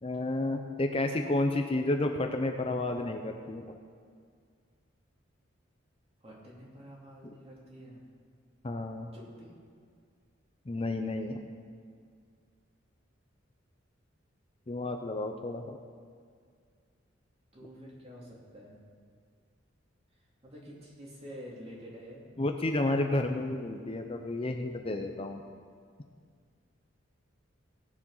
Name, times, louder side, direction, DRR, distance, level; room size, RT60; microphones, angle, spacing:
voice 1, 0.0-3.8 8.6-9.1 10.7-11.4 14.7-15.8 22.4-25.4, left 2 dB, 30° left, 4 dB, 0.6 m, -31 dB
voice 2, 6.2-8.0 9.1-9.5 17.5-18.8 20.4-22.2, equal, 35° right, -4 dB, 2.8 m, -48 dB
16.5 x 7.4 x 5.6 m, 2.1 s
head